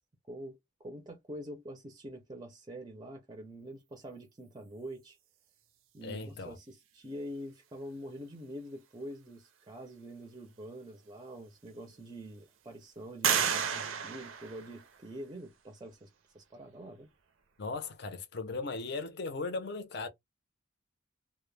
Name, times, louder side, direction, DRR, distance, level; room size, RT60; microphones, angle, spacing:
voice 1, 0.3-5.2 5.9-16.1 16.3-17.1, equal, 20° right, 0.5 m, -45 dB
voice 2, 6.0-6.6 17.6-20.1, left 3 dB, 55° left, 0.6 m, -37 dB
sound 1, 11.0-11.1 11.7-12.3 13.2-15.2, right 8 dB, 80° right, 0.5 m, -32 dB
2.1 x 2.1 x 3.1 m
head